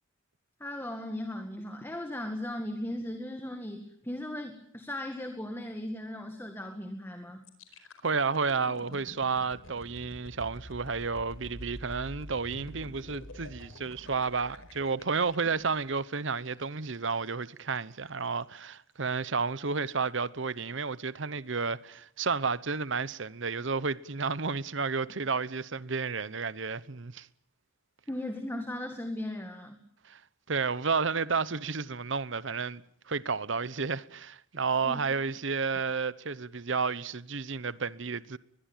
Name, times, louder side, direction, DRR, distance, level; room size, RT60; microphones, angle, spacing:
voice 1, 0.6-7.4 28.1-29.8 34.8-35.0, left 1 dB, 10° left, 2.0 m, -37 dB
sound 1, 7.4-17.3 17.7-17.9, left 1 dB, 85° left, 4.6 m, -47 dB
voice 2, 8.0-27.3 30.1-30.2 30.5-38.4, right 4 dB, 65° right, 0.9 m, -31 dB
22.5 x 22.0 x 9.0 m
head